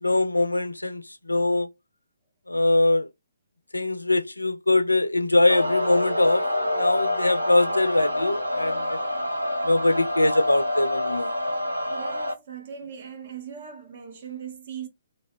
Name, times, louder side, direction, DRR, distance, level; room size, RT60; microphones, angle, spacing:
voice 1, 0.0-1.7 2.5-3.1 3.7-6.4 6.7-9.0 9.6-11.3, left 2 dB, 85° left, 0.3 m, -22 dB
sound 1, 5.5-12.3, left 1 dB, 85° right, 0.5 m, -27 dB
voice 2, 11.9-14.9, right 8 dB, 45° right, 0.8 m, -39 dB
2.2 x 2.0 x 3.4 m
figure-of-eight pair, 130°, 0 cm